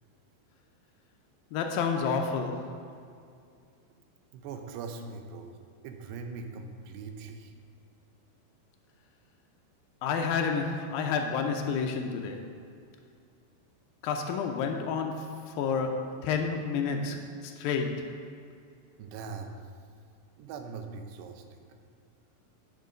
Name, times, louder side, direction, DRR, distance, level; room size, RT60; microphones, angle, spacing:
voice 1, 1.5-2.8 10.0-12.5 14.0-18.1, left 5 dB, 80° left, 4 dB, 2.1 m, -30 dB
voice 2, 4.3-5.6 5.8-7.5 19.0-19.6 20.4-21.6, right 4 dB, 85° right, 5 dB, 2.9 m, -41 dB
9.3 x 6.9 x 5.1 m, 2.4 s
omnidirectional pair, 4.8 m